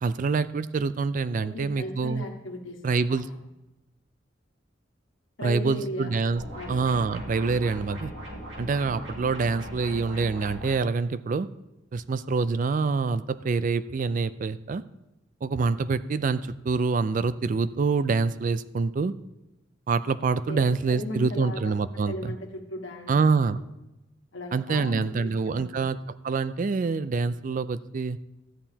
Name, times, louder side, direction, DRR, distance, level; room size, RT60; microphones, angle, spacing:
voice 1, 0.0-2.2 2.8-3.3 5.4-6.4 6.7-8.1 8.6-11.5 11.9-14.8 15.4-19.1 19.9-22.1 23.1-23.6 24.5-28.2, right 4 dB, 45° right, 15 dB, 0.3 m, -26 dB
voice 2, 1.4-2.8 3.1-3.2 5.4-6.1 6.5-6.8 20.5-21.7 22.1-23.1 24.3-25.7, left 1 dB, 90° left, 2 dB, 1.5 m, -36 dB
sound 1, 6.4-10.7, equal, 80° right, 3.9 m, -39 dB
13.5 x 8.9 x 2.8 m, 0.95 s
head